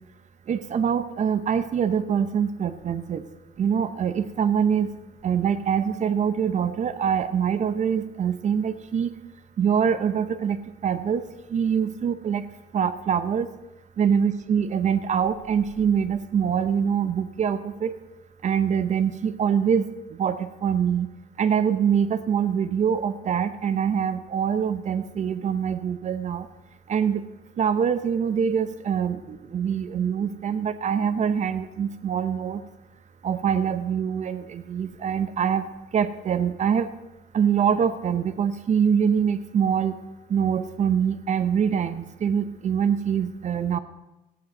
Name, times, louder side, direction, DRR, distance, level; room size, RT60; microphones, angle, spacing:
voice 1, 0.5-3.2 3.6-4.9 5.2-9.1 9.6-10.6 10.8-11.2 11.5-12.4 12.7-13.5 14.0-17.9 18.4-19.8 20.2-21.1 21.4-26.5 26.9-27.2 27.6-32.6 33.2-35.6 35.9-36.9 37.3-40.0 40.3-43.8, right 7 dB, 45° right, 13 dB, 0.8 m, -24 dB
14.5 x 10.5 x 5.3 m, 1.0 s
cardioid pair, 110°, 17 cm